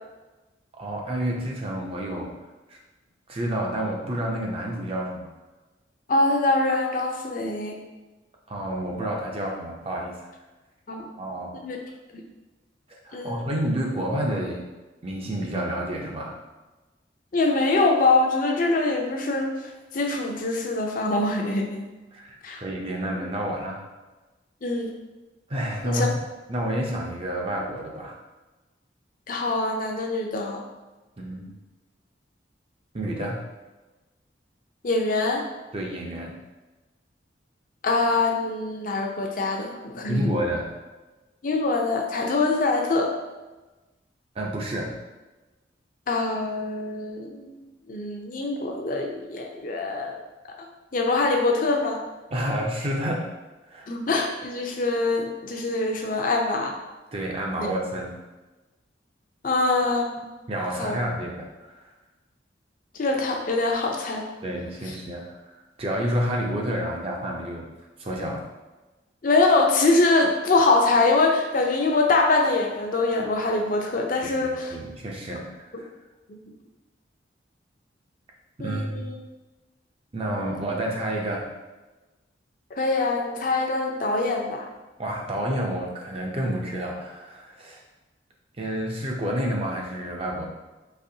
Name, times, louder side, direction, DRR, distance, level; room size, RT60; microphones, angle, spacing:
voice 1, 0.8-2.4 2.7-2.8 3.3-5.3 8.5-10.3 11.2-11.7 12.9-14.7 15.0-16.4 22.1-23.8 25.5-26.1 26.5-28.2 31.2-31.6 32.9-33.4 35.7-36.4 40.1-40.7 44.4-45.0 52.3-53.3 53.7-53.9 57.1-58.1 60.5-61.7 64.4-65.5 65.8-67.7 68.0-68.4 74.7-75.9 78.6-79.1 80.1-81.5 85.0-87.8 88.6-90.5, right 1 dB, 30° right, 0 dB, 0.5 m, -29 dB
voice 2, 6.1-7.8 10.9-11.0 11.6-11.8 12.1-12.2 13.1-13.4 17.3-19.5 19.9-21.8 22.4-22.6 24.6-24.9 25.8-26.1 29.3-30.6 34.8-35.4 37.8-40.3 41.4-43.1 46.1-50.1 50.6-50.7 50.9-52.0 53.9-56.7 57.6-57.7 59.4-60.3 60.8-61.0 63.0-64.2 69.2-74.7 78.6-79.1 80.5-80.6 82.7-84.7, left 3 dB, 45° left, 2 dB, 0.5 m, -24 dB
4.1 x 3.0 x 2.7 m, 1.1 s
head